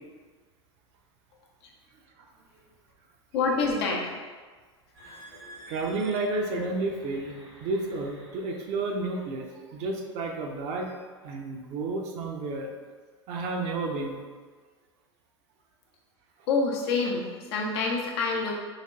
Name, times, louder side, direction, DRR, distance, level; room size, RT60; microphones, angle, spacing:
voice 1, 3.3-4.1 16.5-18.5, left 4 dB, 60° left, -1 dB, 0.7 m, -27 dB
sound 1, 4.9-9.5 10.1-10.4 11.0-11.3, equal, 75° right, 1.2 m, -51 dB
voice 2, 5.7-7.4 7.6-10.9 11.2-12.7 13.3-14.2, right 3 dB, 45° right, 1 dB, 0.5 m, -31 dB
4.1 x 2.9 x 2.3 m, 1.5 s
figure-of-eight pair, 85°, 15 cm